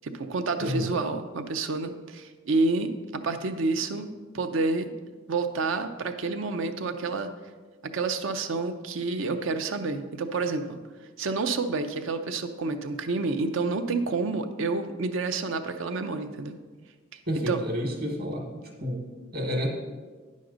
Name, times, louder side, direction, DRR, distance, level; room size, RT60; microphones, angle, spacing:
voice 1, 0.0-4.9 5.3-7.3 7.8-10.8 11.2-16.5 17.5-17.6, right 3 dB, 75° right, 8 dB, 0.6 m, -29 dB
voice 2, 0.6-0.9 17.3-18.5 18.8-19.0 19.3-19.7, equal, 50° right, 2 dB, 1.4 m, -29 dB
9.5 x 6.4 x 3.9 m, 1.4 s
head